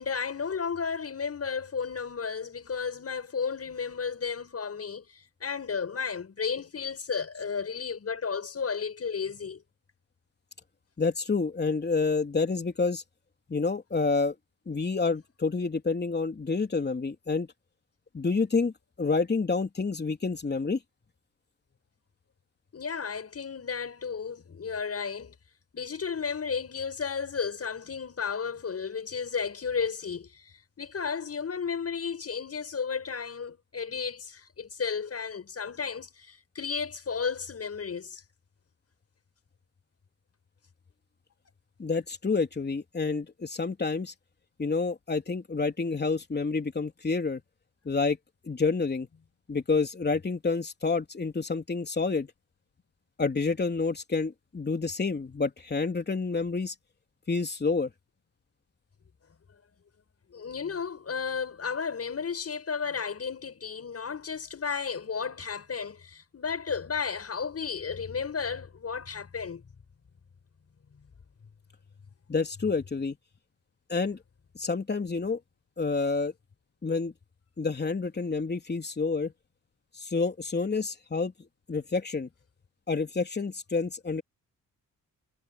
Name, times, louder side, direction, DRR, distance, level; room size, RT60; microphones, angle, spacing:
voice 1, 0.0-9.6 22.7-25.3 25.7-38.2 60.3-69.6, left 6 dB, 45° left, 7.7 m, -33 dB
voice 2, 11.0-13.0 13.5-14.4 14.7-17.5 18.1-20.8 41.8-44.1 44.6-47.4 47.9-48.2 48.4-49.1 49.5-52.3 53.2-56.7 57.3-57.9 72.3-73.2 73.9-74.2 74.6-75.4 75.8-76.3 76.8-77.1 77.6-79.3 80.0-81.3 81.7-82.3 82.9-84.2, left 4 dB, 30° left, 3.5 m, -28 dB
cardioid pair, 100°, 33 cm